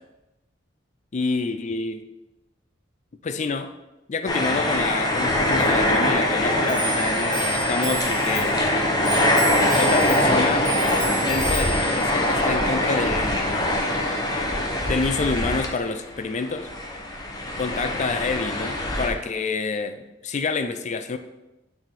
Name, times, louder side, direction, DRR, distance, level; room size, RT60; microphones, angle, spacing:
voice 1, 1.1-2.1 3.2-3.7 4.1-8.7 9.8-10.7 11.2-14.0 14.9-16.7 17.6-21.2, left 4 dB, 40° left, 9 dB, 0.4 m, -28 dB
sound 1, 4.3-16.1 16.4-19.1, left 1 dB, 20° left, 0.8 m, -23 dB
Clock, 5.5-15.4, right 3 dB, 5° left, 1.5 m, -34 dB
8.9 x 3.5 x 3.7 m, 0.99 s
head